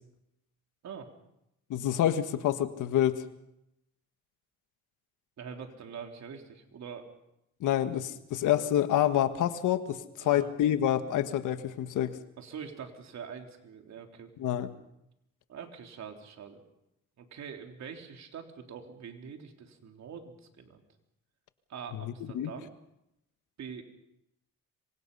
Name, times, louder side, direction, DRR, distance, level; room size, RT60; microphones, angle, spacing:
voice 1, 1.7-3.2 7.6-12.2 14.4-14.7 21.9-22.5, left 11 dB, 80° left, 10 dB, 1.6 m, -27 dB
voice 2, 5.4-7.1 10.2-10.5 12.4-14.3 15.5-16.6 17.2-20.8 21.7-22.7 23.6-23.8, right 7 dB, 65° right, 4 dB, 3.7 m, -44 dB
26.5 x 24.5 x 5.6 m, 0.83 s
cardioid pair, 90°, 30 cm